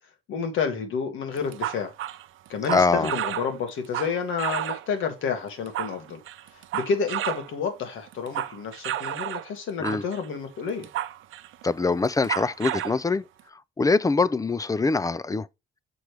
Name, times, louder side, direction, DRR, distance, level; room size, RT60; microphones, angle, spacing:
voice 1, 0.3-1.9 2.5-6.2 6.7-10.9, left 6 dB, 80° left, 2.1 m, -30 dB
sound 1, 1.4-5.0 5.5-7.5 7.9-9.5 9.8-10.3 10.7-11.6 12.0-13.0, right 13 dB, 80° right, 0.6 m, -32 dB
voice 2, 2.7-3.1 9.8-10.0 11.6-13.2 13.8-15.5, left 3 dB, 15° left, 0.4 m, -23 dB
6.1 x 4.7 x 3.3 m
cardioid pair, 90°, 20 cm